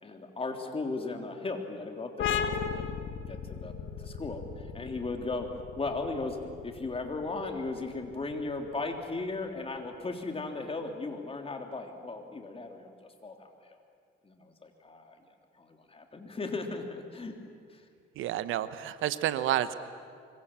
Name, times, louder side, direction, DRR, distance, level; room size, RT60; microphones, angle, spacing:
voice 1, 0.0-2.9 3.3-5.5 5.7-6.4 6.6-13.8 14.2-15.2 15.6-17.4 17.7-17.9, left 3 dB, 30° left, 4 dB, 3.4 m, -37 dB
sound 1, 2.2-9.5, left 7 dB, 75° left, 1.8 m, -37 dB
voice 2, 18.1-19.7, right 12 dB, 85° right, 13 dB, 1.0 m, -30 dB
25.0 x 23.0 x 7.5 m, 2.2 s
cardioid pair, 90°, 20 cm